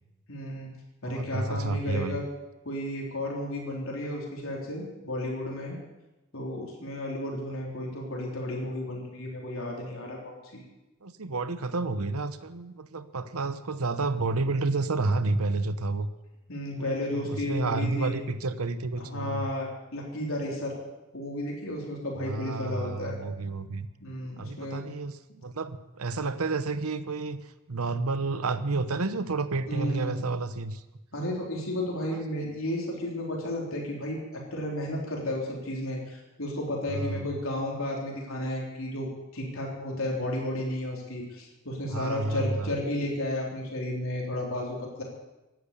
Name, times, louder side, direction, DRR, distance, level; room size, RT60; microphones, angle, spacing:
voice 1, 0.3-0.7 1.0-2.3 2.7-5.8 6.3-10.6 16.5-18.1 19.0-20.8 21.1-23.2 24.0-24.8 29.7-30.2 31.1-45.0, left 1 dB, 70° left, -2 dB, 3.8 m, -33 dB
voice 2, 1.0-2.2 11.0-16.1 16.8-19.5 22.2-23.9 24.4-30.8 32.1-32.5 36.9-37.3 41.9-42.7, right 3 dB, 85° right, 12 dB, 0.9 m, -30 dB
17.0 x 11.0 x 6.8 m, 1.0 s
head